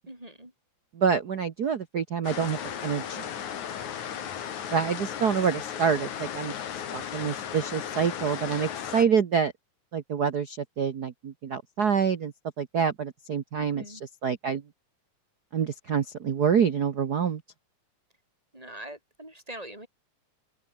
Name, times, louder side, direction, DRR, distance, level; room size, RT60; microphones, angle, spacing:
voice 1, 0.1-0.5 4.6-5.0 13.6-14.0 18.5-19.9, right 1 dB, 10° right, 6.5 m, -43 dB
voice 2, 0.9-3.2 4.7-6.5 6.9-9.5 9.9-14.6 15.5-17.4, right 6 dB, 85° right, 0.8 m, -27 dB
sound 1, 2.2-9.0, left 9 dB, 70° left, 3.5 m, -35 dB
open air
omnidirectional pair, 3.6 m